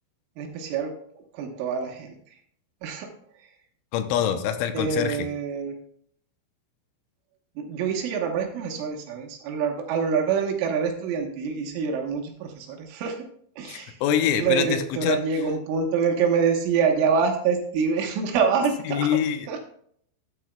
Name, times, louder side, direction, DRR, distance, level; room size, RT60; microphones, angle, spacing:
voice 1, 0.4-0.9 1.3-2.2 2.8-3.1 3.4-3.5 4.7-5.8 7.6-13.2 13.6-14.0 14.3-19.1 19.5-19.6, right 6 dB, 75° right, 2 dB, 3.6 m, -26 dB
voice 2, 3.9-5.3 13.6-15.2 18.9-19.6, left 9 dB, 80° left, 8 dB, 3.0 m, -25 dB
13.5 x 8.2 x 2.3 m, 0.65 s
omnidirectional pair, 5.9 m